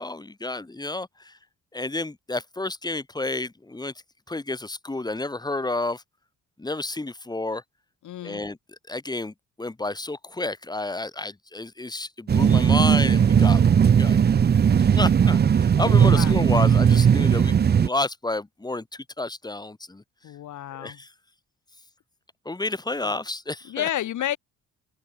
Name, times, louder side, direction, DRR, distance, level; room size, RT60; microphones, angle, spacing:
voice 1, 0.0-1.4 1.7-3.9 4.3-6.0 6.6-7.6 8.2-8.6 8.9-13.6 14.0-14.2 14.7-20.0 20.8-21.1 22.4-23.9, left 2 dB, 15° left, 1.8 m, -30 dB
voice 2, 8.0-8.4 16.0-16.3 20.2-21.0 23.6-24.4, left 12 dB, 75° left, 6.1 m, -30 dB
sound 1, 12.3-17.9, right 7 dB, 35° right, 0.7 m, -18 dB
cardioid pair, 90°, 30 cm